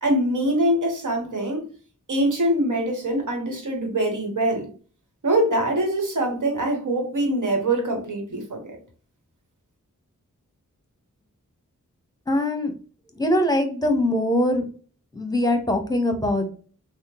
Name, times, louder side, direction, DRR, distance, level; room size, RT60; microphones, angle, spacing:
voice 1, 0.0-1.6 2.1-4.7 5.2-8.8, right 1 dB, 65° right, 2 dB, 1.2 m, -23 dB
voice 2, 12.3-12.7 13.2-14.7 15.1-16.5, left 1 dB, 10° left, 5 dB, 0.9 m, -22 dB
3.4 x 2.1 x 2.9 m, 0.40 s
cardioid pair, 40°, 33 cm